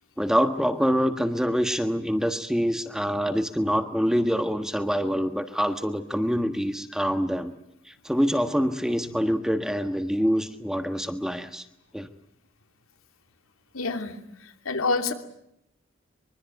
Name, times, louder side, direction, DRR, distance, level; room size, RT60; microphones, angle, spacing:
voice 1, 0.2-7.5 7.9-11.7 11.9-12.1, equal, 5° right, 8 dB, 1.4 m, -25 dB
voice 2, 13.7-14.2 14.6-15.1, left 3 dB, 85° left, 6 dB, 2.9 m, -27 dB
24.5 x 23.5 x 9.2 m, 0.77 s
head